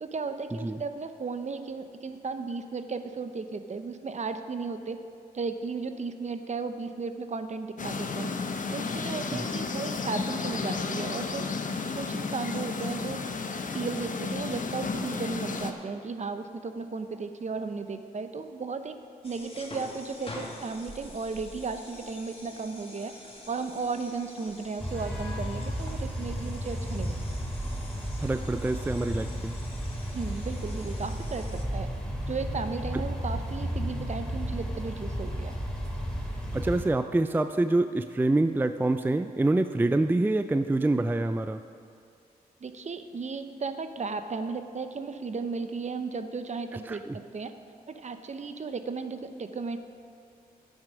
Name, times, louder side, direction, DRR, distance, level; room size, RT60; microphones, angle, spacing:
voice 1, 0.0-5.0 5.3-8.3 8.7-11.5 12.0-13.2 13.7-19.0 19.2-27.1 30.1-31.9 32.3-35.5 42.6-47.5 47.9-49.8, right 4 dB, 45° right, 9 dB, 0.8 m, -35 dB
sound 1, 7.8-15.7, left 4 dB, 55° left, 0.9 m, -32 dB
sound 2, 19.2-31.6, left 2 dB, 35° left, 1.9 m, -47 dB
sound 3, 24.8-36.8, equal, 5° left, 2.7 m, -33 dB
voice 2, 28.2-29.5 36.5-41.6 46.9-47.2, right 2 dB, 10° right, 10 dB, 0.4 m, -26 dB
11.0 x 8.9 x 5.2 m, 2.4 s
cardioid pair, 55°, 16 cm